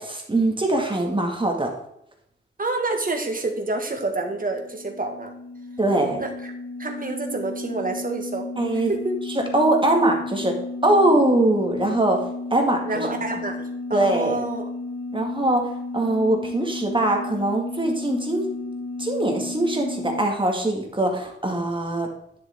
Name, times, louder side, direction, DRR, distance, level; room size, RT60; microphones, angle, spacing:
voice 1, 0.0-1.7 5.8-6.2 8.6-8.9 9.3-10.5 10.8-12.2 12.5-13.1 13.9-14.4 15.1-15.7 15.9-18.5 19.0-22.1, right 1 dB, 25° right, 2 dB, 2.0 m, -22 dB
voice 2, 2.6-5.3 6.2-6.5 6.8-8.5 8.7-9.2 12.9-14.7, right 2 dB, 40° right, 4 dB, 1.8 m, -28 dB
sound 1, 4.1-20.2, left 2 dB, 90° left, 1.7 m, -33 dB
10.5 x 7.0 x 3.6 m, 0.75 s
wide cardioid pair, 115°, 21 cm